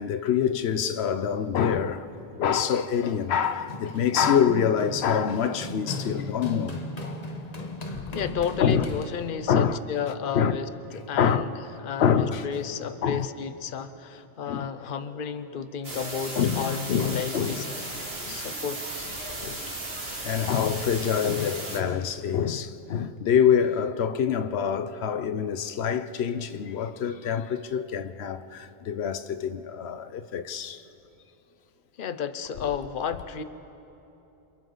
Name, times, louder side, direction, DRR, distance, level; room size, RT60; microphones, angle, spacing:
voice 1, 0.0-2.1 2.3-6.8 8.6-8.9 9.5-9.8 10.3-10.6 11.2-11.5 12.0-12.5 13.0-13.3 14.5-14.7 16.4-17.7 18.2-18.4 19.4-19.8 20.2-30.8, left 8 dB, 90° left, 1.0 m, -25 dB
Run, 3.1-9.5, left 2 dB, 40° left, 1.2 m, -37 dB
voice 2, 8.1-17.6 18.2-19.1 32.0-33.4, left 7 dB, 60° left, 0.9 m, -32 dB
sound 1, 15.8-21.8, right 2 dB, 75° right, 2.5 m, -35 dB
28.0 x 27.5 x 3.9 m
omnidirectional pair, 1.0 m